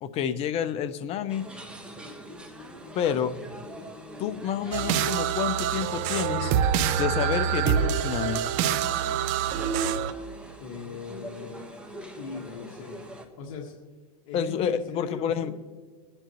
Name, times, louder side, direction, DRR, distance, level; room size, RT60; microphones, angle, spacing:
voice 1, 0.0-1.4 2.9-3.3 4.2-6.5 7.0-8.4 14.3-15.5, left 8 dB, 30° left, 11 dB, 0.7 m, -29 dB
sound 1, 1.3-13.3, equal, 5° right, 1.2 m, -44 dB
sound 2, 4.7-10.1, right 9 dB, 45° right, 0.7 m, -26 dB
voice 2, 10.6-11.7 12.2-13.0 13.4-13.8 14.2-15.5, left 5 dB, 55° left, -1 dB, 1.7 m, -39 dB
22.5 x 9.8 x 3.1 m, 1.5 s
supercardioid pair, 135°, 19 cm